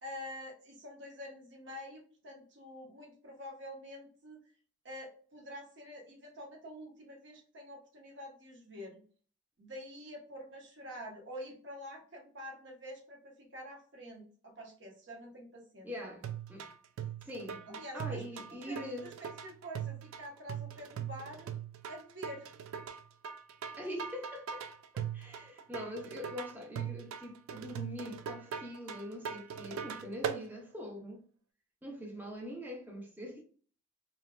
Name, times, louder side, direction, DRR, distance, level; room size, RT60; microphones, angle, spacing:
voice 1, 0.0-4.4 4.8-9.0 9.6-15.9 17.7-18.2 18.7-21.5 21.9-22.5, equal, 60° right, 0.8 m, -47 dB
voice 2, 15.8-16.7 17.2-19.1 23.8-24.6 24.9-31.2 31.8-33.4, left 1 dB, 10° right, 0.5 m, -43 dB
sound 1, 16.2-30.4, right 8 dB, 90° right, 0.3 m, -41 dB
2.7 x 2.1 x 2.3 m
head